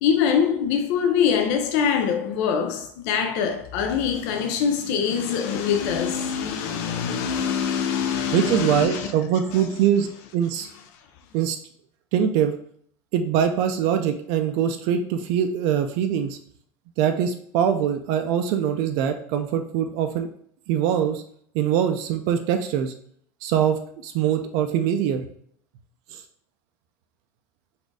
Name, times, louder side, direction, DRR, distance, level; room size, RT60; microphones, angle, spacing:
voice 1, 0.0-9.1 9.5-9.7, left 7 dB, 70° left, 0.5 m, -24 dB
voice 2, 8.3-10.1 10.3-10.7 11.3-11.6 12.1-12.5 13.1-16.4 17.0-20.3 20.7-21.2 21.5-22.9 23.4-25.2 26.1-26.2, right 9 dB, 60° right, 0.5 m, -23 dB
4.1 x 2.6 x 4.6 m
cardioid pair, 155°, 9 cm